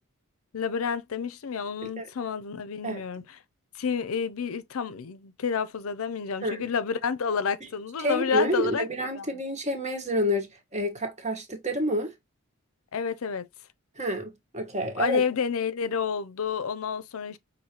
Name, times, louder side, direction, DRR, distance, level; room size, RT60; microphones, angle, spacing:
voice 1, 0.5-3.2 3.8-9.3 12.9-13.5 15.0-17.4, left 6 dB, 75° left, 0.5 m, -29 dB
voice 2, 8.0-12.1 14.0-15.2, equal, 30° right, 1.3 m, -29 dB
5.5 x 2.7 x 2.9 m
head